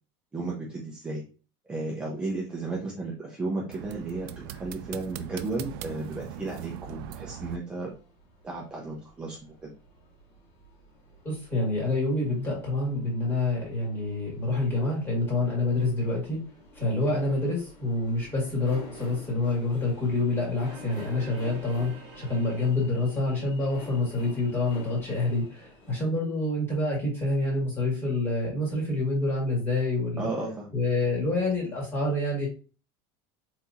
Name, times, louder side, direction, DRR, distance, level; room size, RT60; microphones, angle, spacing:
voice 1, 0.3-1.2 1.7-7.9 8.4-9.7 30.2-30.7, right 3 dB, 10° right, -4 dB, 0.6 m, -34 dB
sound 1, 3.7-7.6, right 10 dB, 80° right, 0.4 m, -40 dB
sound 2, 6.3-25.9, left 2 dB, 70° left, 2.3 m, -50 dB
voice 2, 11.2-16.4 16.7-30.3 30.7-32.5, left 2 dB, 20° left, -3 dB, 1.8 m, -27 dB
sound 3, 20.6-23.3, right 4 dB, 50° right, 1.0 m, -49 dB
4.3 x 4.0 x 2.5 m, 0.36 s
cardioid pair, 175°, 12 cm